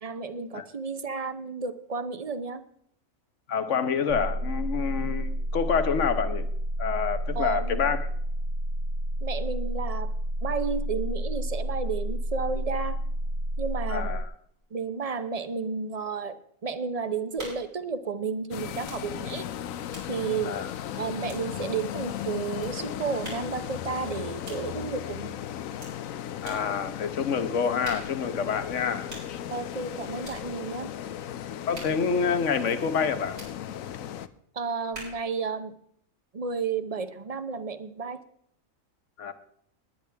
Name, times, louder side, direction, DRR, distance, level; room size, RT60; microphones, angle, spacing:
voice 1, 0.0-2.6 7.3-7.9 9.2-10.1 10.4-13.0 13.6-14.1 14.7-16.4 16.6-19.5 20.1-20.5 21.0-25.4 29.5-30.9 34.5-35.7 36.3-38.2, right 5 dB, 35° right, 11 dB, 0.8 m, -32 dB
voice 2, 3.5-6.5 6.8-8.0 13.9-14.2 20.4-20.7 26.4-29.4 31.7-33.4 39.2-39.3, left 6 dB, 65° left, 10 dB, 1.4 m, -27 dB
sound 1, 4.1-14.2, right 1 dB, 65° right, 1.2 m, -30 dB
sound 2, 17.4-17.8 18.8-19.1 19.4-21.8 22.6-22.8 23.2-23.6 24.4-24.7 25.8-26.0 26.4-26.7 27.8-28.3 29.1-29.4 30.2-30.5 31.7-32.1 33.4-33.6 34.9-35.3, right 1 dB, 85° right, 5.4 m, -44 dB
sound 3, 18.5-34.3, left 10 dB, 85° left, 1.1 m, -36 dB
19.5 x 10.0 x 3.4 m, 0.68 s
omnidirectional pair, 1.4 m